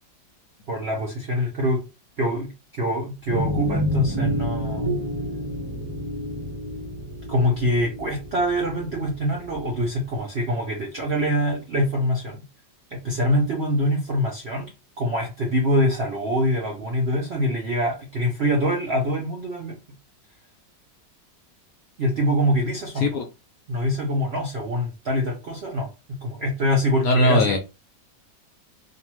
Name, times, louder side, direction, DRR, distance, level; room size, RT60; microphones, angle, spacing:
voice 1, 0.7-1.8 2.2-5.0 7.3-12.5 12.9-14.7 15.0-19.8 22.0-23.1 23.7-27.6, equal, 65° right, 0.6 m, -24 dB
sound 1, 3.3-9.8, equal, 15° right, 0.9 m, -29 dB
voice 2, 27.0-27.6, left 1 dB, 70° left, 0.9 m, -19 dB
2.7 x 2.2 x 2.9 m
omnidirectional pair, 1.9 m